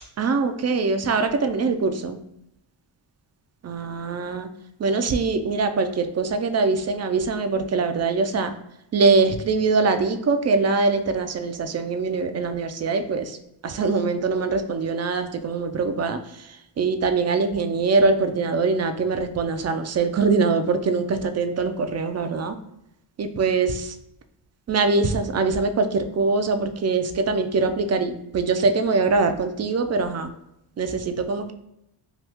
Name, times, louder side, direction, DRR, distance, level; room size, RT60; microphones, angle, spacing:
voice 1, 0.2-2.2 3.6-4.5 4.8-8.5 8.9-13.3 13.6-16.2 16.8-22.5 23.2-23.9 24.7-30.3 30.8-31.5, right 4 dB, 35° right, 8 dB, 0.4 m, -23 dB
2.9 x 2.3 x 3.4 m, 0.83 s
cardioid pair, 65°, 47 cm